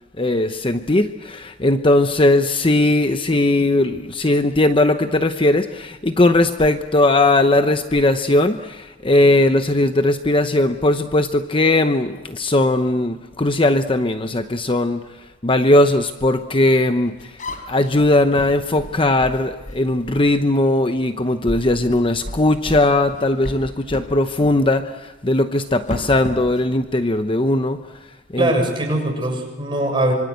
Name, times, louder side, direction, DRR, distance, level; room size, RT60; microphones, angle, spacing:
voice 1, 0.2-15.0 15.4-17.3 17.7-27.8 28.3-28.5, left 2 dB, 30° left, 8 dB, 0.9 m, -18 dB
sound 1, 17.0-20.3 20.9-21.1 21.4-24.1 24.4-24.6 25.6-26.7, left 1 dB, 45° left, 4.1 m, -34 dB
voice 2, 28.4-30.1, right 1 dB, 25° right, 2 dB, 6.9 m, -21 dB
25.5 x 25.0 x 8.1 m, 1.1 s
head